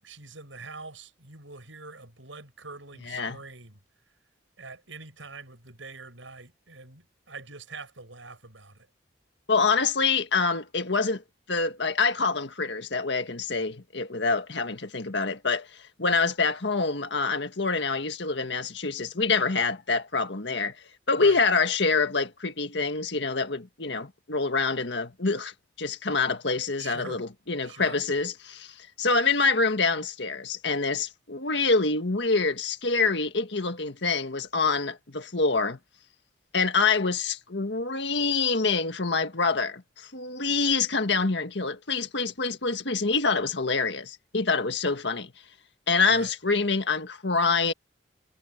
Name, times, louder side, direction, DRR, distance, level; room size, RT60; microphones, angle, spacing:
voice 1, 0.0-3.8 4.6-8.9 21.2-21.4 26.8-27.2 27.6-28.0 46.1-46.3, right 3 dB, 90° right, 7.8 m, -44 dB
voice 2, 3.1-3.4 9.5-11.2 11.5-15.7 16.0-20.8 21.1-35.8 36.5-45.3 45.9-47.7, left 4 dB, 65° left, 1.8 m, -26 dB
head